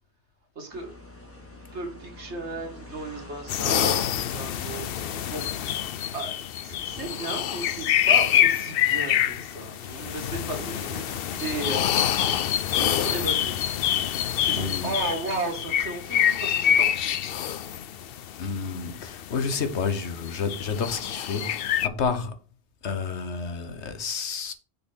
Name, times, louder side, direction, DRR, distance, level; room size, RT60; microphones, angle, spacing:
voice 1, 0.6-0.9 1.7-5.5 6.1-6.4 6.6-12.0 12.7-13.6 14.4-17.2, right 2 dB, 85° right, 2.1 m, -35 dB
sound 1, 0.7-5.7, left 2 dB, 10° left, 1.7 m, -45 dB
sound 2, 3.5-21.9, left 10 dB, 65° left, 0.7 m, -26 dB
voice 2, 14.5-14.9 18.4-22.4 22.8-24.5, left 5 dB, 85° left, 1.3 m, -30 dB
6.7 x 4.1 x 6.1 m
omnidirectional pair, 1.1 m